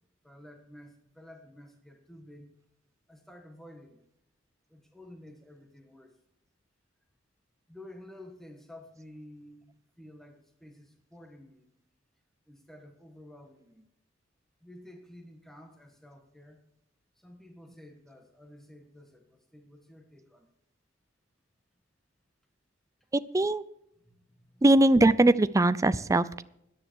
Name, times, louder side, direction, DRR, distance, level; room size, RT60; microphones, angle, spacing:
voice 1, 0.2-2.5 3.1-4.0 4.7-6.2 7.7-11.7 12.5-13.8 14.6-16.6 17.2-20.5 24.0-24.6, left 1 dB, ahead, 4 dB, 1.5 m, -51 dB
voice 2, 23.1-23.6 24.6-26.4, right 2 dB, 15° right, 14 dB, 0.4 m, -21 dB
13.5 x 10.0 x 4.6 m, 0.79 s
head